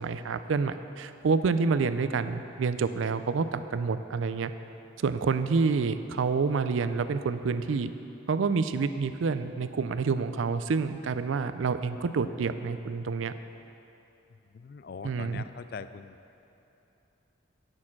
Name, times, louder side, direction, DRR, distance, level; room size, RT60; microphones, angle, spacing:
voice 1, 0.0-4.5 5.0-7.9 8.3-13.3 15.0-15.4, right 4 dB, 85° right, 11 dB, 0.4 m, -28 dB
voice 2, 14.3-16.2, left 5 dB, 50° left, 12 dB, 0.3 m, -42 dB
9.7 x 6.4 x 5.9 m, 2.9 s
head